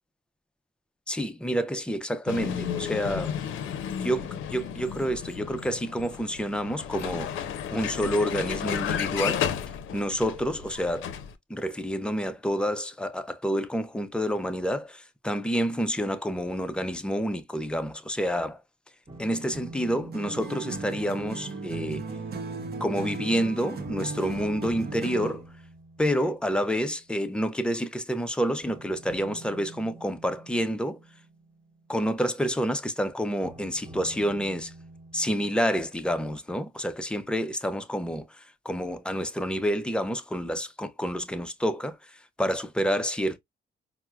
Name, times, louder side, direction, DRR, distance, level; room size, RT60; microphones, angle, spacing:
voice 1, 1.1-3.4 4.0-7.4 7.7-9.5 9.9-11.1 11.5-18.6 19.2-22.1 22.8-25.5 26.0-31.0 31.9-34.7 35.1-43.4, equal, 5° left, 0.4 m, -28 dB
Vehicle, 2.3-11.3, left 8 dB, 80° left, 0.5 m, -33 dB
sound 1, 19.1-23.4 23.8-27.1 28.6-32.6 33.4-35.6, right 2 dB, 20° right, 1.1 m, -47 dB
sound 2, 20.1-25.5, right 3 dB, 50° right, 0.7 m, -36 dB
4.4 x 2.0 x 2.3 m
cardioid pair, 90°, 20 cm